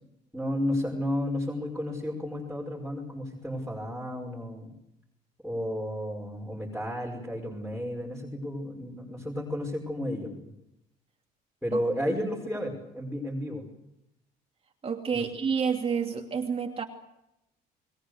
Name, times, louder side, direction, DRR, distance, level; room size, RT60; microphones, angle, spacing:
voice 1, 0.3-4.7 5.4-10.5 11.6-13.7 15.1-15.3, left 1 dB, ahead, -3 dB, 5.6 m, -32 dB
voice 2, 14.8-16.8, right 6 dB, 35° right, 2 dB, 2.7 m, -29 dB
30.0 x 21.5 x 6.7 m, 0.85 s
cardioid pair, 110°, 17 cm